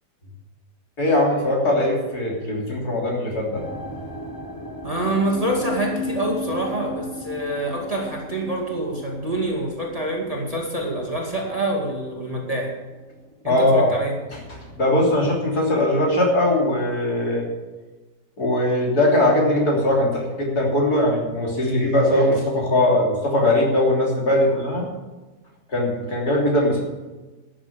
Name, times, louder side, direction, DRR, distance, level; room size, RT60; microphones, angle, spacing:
voice 1, 1.0-3.6 13.5-13.9 14.8-17.5 18.4-24.9 25.7-26.8, left 1 dB, 65° left, -2 dB, 3.8 m, -20 dB
sound 1, 3.5-14.7 15.0-15.6 16.2-16.3, left 1 dB, 15° left, 1.2 m, -36 dB
voice 2, 4.8-12.8 13.4-14.1, right 1 dB, 20° right, -2 dB, 2.2 m, -26 dB
12.5 x 7.6 x 8.4 m, 1.2 s
omnidirectional pair, 1.8 m